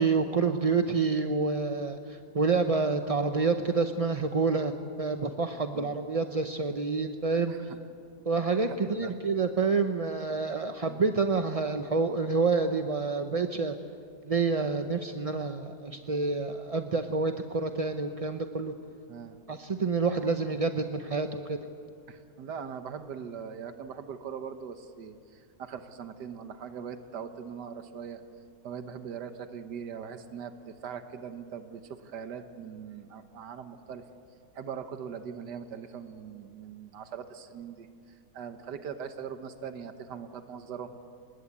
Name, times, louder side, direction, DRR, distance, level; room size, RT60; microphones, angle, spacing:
voice 1, 0.0-7.5 8.3-13.7 14.3-18.7 19.5-21.6, right 4 dB, 35° right, 7 dB, 0.6 m, -28 dB
voice 2, 7.5-7.8 8.6-9.1 10.9-11.3 19.1-19.4 22.1-28.2 28.6-34.0 34.5-41.0, right 7 dB, 85° right, 8 dB, 1.7 m, -41 dB
27.0 x 21.0 x 8.5 m, 2.4 s
omnidirectional pair, 1.8 m